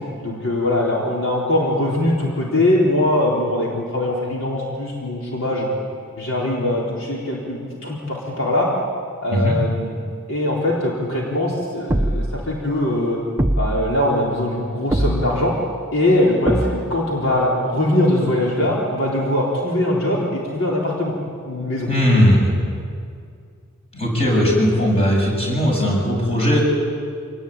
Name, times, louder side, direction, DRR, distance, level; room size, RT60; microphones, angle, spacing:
voice 1, 0.0-5.7 6.2-8.7 9.2-10.0 10.3-13.2 13.6-15.5 15.9-21.1 21.5-21.9, left 1 dB, 65° left, -4 dB, 4.2 m, -21 dB
sound 1, 11.9-12.5 13.4-14.0 14.9-15.5 16.5-17.1, right 1 dB, 10° right, 0.7 m, -22 dB
voice 2, 21.9-22.5 23.9-26.6, equal, 30° left, -2 dB, 7.6 m, -18 dB
26.5 x 19.5 x 8.9 m, 2.2 s
head